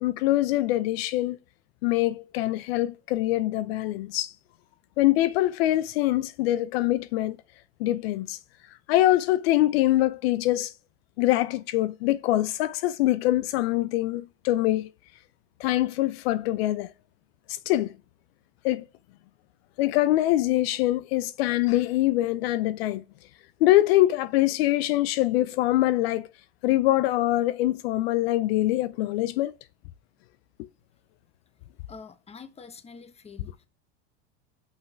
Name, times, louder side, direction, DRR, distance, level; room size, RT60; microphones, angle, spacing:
voice 1, 0.0-1.4 1.8-4.3 5.0-7.4 7.8-8.4 8.9-10.7 11.2-14.9 15.6-16.9 17.5-17.9 18.6-18.8 19.8-23.0 23.6-26.3 26.6-29.5, left 15 dB, 75° left, 0.6 m, -24 dB
voice 2, 31.9-33.7, left 5 dB, 20° left, 1.1 m, -46 dB
5.6 x 5.6 x 5.0 m
supercardioid pair, 110°, 31 cm